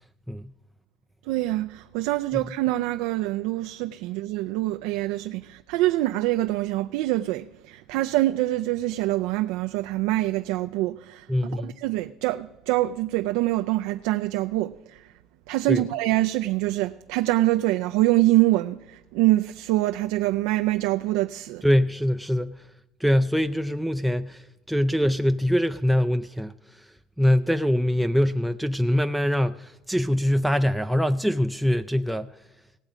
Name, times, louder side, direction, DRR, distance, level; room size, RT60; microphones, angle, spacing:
voice 1, 1.3-11.3 11.5-15.0 15.5-21.6, right 17 dB, 80° right, 0.4 m, -25 dB
voice 2, 11.3-11.7 15.7-15.8 21.6-22.6 23.0-26.9 27.2-32.3, equal, ahead, 0.3 m, -23 dB
17.5 x 7.4 x 5.0 m
cardioid pair, 130°, 0 cm